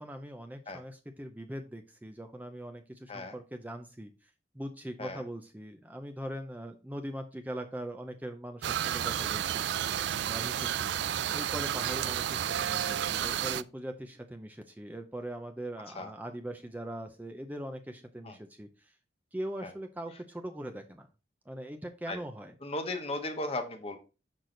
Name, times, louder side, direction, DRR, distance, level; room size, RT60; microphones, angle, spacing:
voice 1, 0.0-9.7 10.2-10.9 11.3-18.9 19.3-21.1 21.5-22.6, right 1 dB, 10° right, 5 dB, 0.5 m, -41 dB
sound 1, 8.6-13.6, right 10 dB, 70° right, 0.3 m, -31 dB
voice 2, 22.6-24.0, left 2 dB, 35° left, 6 dB, 1.1 m, -36 dB
6.5 x 6.0 x 3.9 m, 0.31 s
head